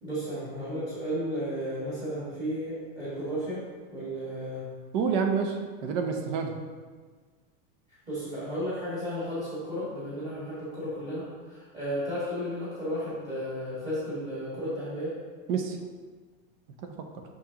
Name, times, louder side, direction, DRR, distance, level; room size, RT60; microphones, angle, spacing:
voice 1, 0.0-4.6 8.1-15.2, equal, 15° right, -11 dB, 1.5 m, -33 dB
voice 2, 4.9-6.5 15.5-15.8 16.8-17.2, right 6 dB, 40° right, 4 dB, 0.6 m, -28 dB
6.3 x 5.9 x 2.8 m, 1.5 s
supercardioid pair, 170°, 40 cm